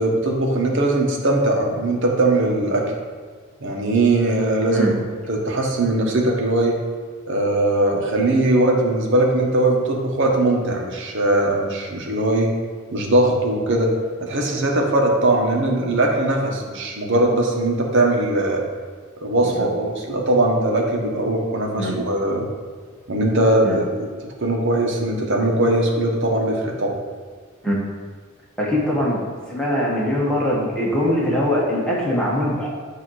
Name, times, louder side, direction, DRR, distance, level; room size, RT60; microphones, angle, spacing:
voice 1, 0.0-2.8 3.6-5.0 5.3-6.7 7.3-12.5 12.9-13.9 14.2-18.6 19.2-22.4 23.1-23.9 24.4-27.0, right 2 dB, 60° right, 0 dB, 1.2 m, -20 dB
voice 2, 28.6-29.2 29.5-32.7, equal, 5° left, -5 dB, 1.4 m, -22 dB
8.4 x 2.9 x 6.3 m, 1.6 s
head